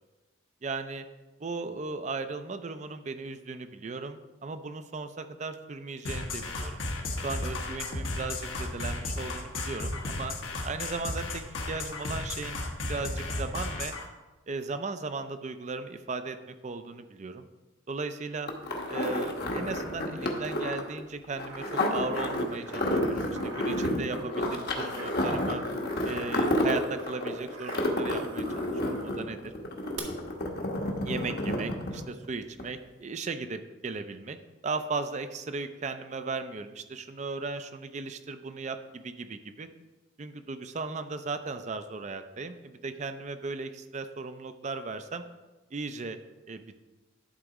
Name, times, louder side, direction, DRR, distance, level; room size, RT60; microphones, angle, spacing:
voice 1, 0.6-1.1 1.4-6.8 7.2-10.4 10.6-12.6 12.9-13.9 14.5-17.5 17.9-18.5 18.9-25.6 26.0-29.5 31.0-34.4 34.6-39.7 40.2-45.2 45.7-46.2 46.5-46.6, right 4 dB, 35° right, 9 dB, 0.4 m, -36 dB
sound 1, 6.0-14.0, left 2 dB, 75° left, 1.2 m, -34 dB
sound 2, 18.5-32.3 32.6-32.7, left 1 dB, 50° left, 1.1 m, -30 dB
sound 3, 21.5-29.2 30.0-30.1, right 4 dB, 85° right, 1.3 m, -47 dB
11.0 x 4.1 x 4.8 m, 1.2 s
head